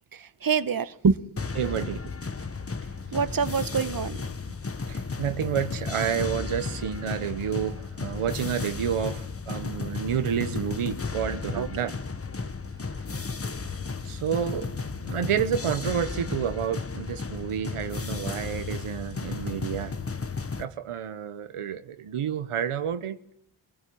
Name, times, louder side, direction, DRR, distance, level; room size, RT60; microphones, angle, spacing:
voice 1, 0.1-1.2 3.1-4.2 11.5-11.7, right 5 dB, 45° right, 1.2 m, -25 dB
sound 1, 1.4-20.7, left 4 dB, 30° left, 1.2 m, -34 dB
voice 2, 1.5-2.1 2.9-3.2 4.9-12.0 12.8-13.0 14.0-20.0 20.6-23.2, right 8 dB, 90° right, 1.1 m, -30 dB
24.0 x 17.5 x 10.0 m
cardioid pair, 60°, 49 cm